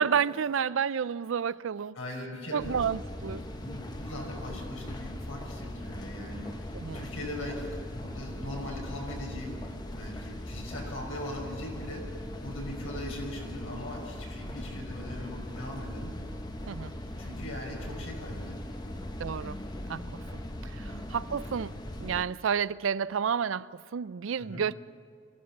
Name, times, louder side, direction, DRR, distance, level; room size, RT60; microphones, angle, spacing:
voice 1, 0.0-1.9 2.5-3.4 6.7-7.1 16.7-16.9 19.2-19.6 19.9-24.8, right 7 dB, 75° right, 0.4 m, -30 dB
voice 2, 2.0-2.8 3.5-6.7 6.9-12.0 12.4-16.1 17.2-18.6 18.8-19.1 20.8-21.0 24.4-24.6, left 1 dB, 85° left, 5.8 m, -40 dB
sound 1, 2.6-22.2, left 1 dB, 20° left, 0.9 m, -39 dB
23.0 x 16.0 x 7.3 m
head